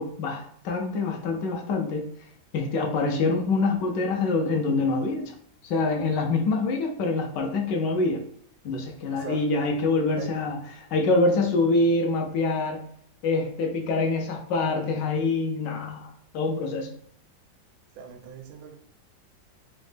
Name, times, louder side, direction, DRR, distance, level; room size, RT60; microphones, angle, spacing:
voice 1, 0.0-2.1 2.5-5.3 5.6-8.2 8.6-12.8 13.2-16.9, left 3 dB, 75° left, 1.1 m, -25 dB
voice 2, 9.1-9.5 10.2-10.4 18.0-18.8, right 6 dB, 80° right, 1.3 m, -39 dB
4.0 x 2.1 x 3.1 m
omnidirectional pair, 2.1 m